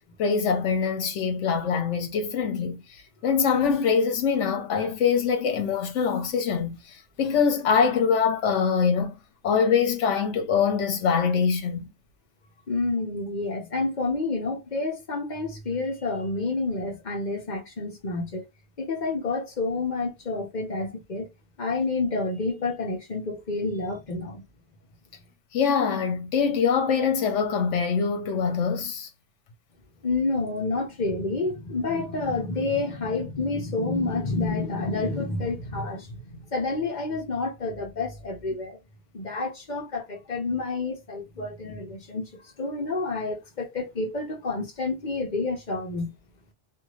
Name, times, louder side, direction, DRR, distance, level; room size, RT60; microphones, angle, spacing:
voice 1, 0.2-2.8 3.2-9.1 9.4-11.9 25.5-29.1, left 6 dB, 75° left, 1.1 m, -24 dB
voice 2, 12.7-18.5 18.8-21.3 21.6-24.4 30.0-38.8 39.1-46.1, left 3 dB, 40° left, 0.9 m, -29 dB
2.7 x 2.5 x 3.1 m
omnidirectional pair, 1.3 m